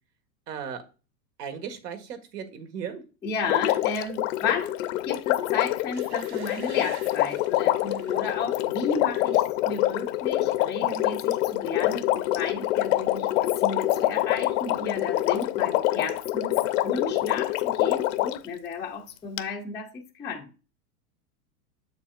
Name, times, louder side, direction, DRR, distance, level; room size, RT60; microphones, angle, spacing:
voice 1, 0.5-0.8 1.4-3.0 3.7-3.8, right 7 dB, 90° right, 1.8 m, -36 dB
voice 2, 3.2-4.8 5.0-13.3 13.6-16.5 16.8-20.5, left 4 dB, 10° left, 0.4 m, -33 dB
Water, 3.4-18.5 19.4-19.5, left 15 dB, 55° left, 0.6 m, -26 dB
sound 1, 5.2-5.4 5.9-8.2 8.7-8.9 9.3-10.0 10.3-10.4, right 9 dB, 45° right, 1.7 m, -49 dB
7.2 x 7.0 x 2.4 m
supercardioid pair, 145°, 47 cm